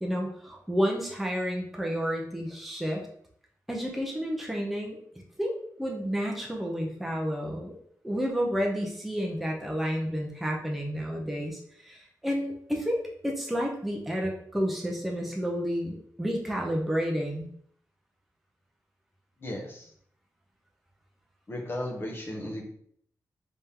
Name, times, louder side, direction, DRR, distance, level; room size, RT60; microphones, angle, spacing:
voice 1, 0.0-3.1 3.7-5.0 5.4-5.5 5.8-7.8 8.0-13.0 13.2-17.5, equal, ahead, -1 dB, 0.5 m, -30 dB
voice 2, 19.4-19.9 21.5-22.6, left 1 dB, 35° left, 0 dB, 0.8 m, -35 dB
3.5 x 3.4 x 2.8 m, 0.64 s
wide cardioid pair, 165°, 7 cm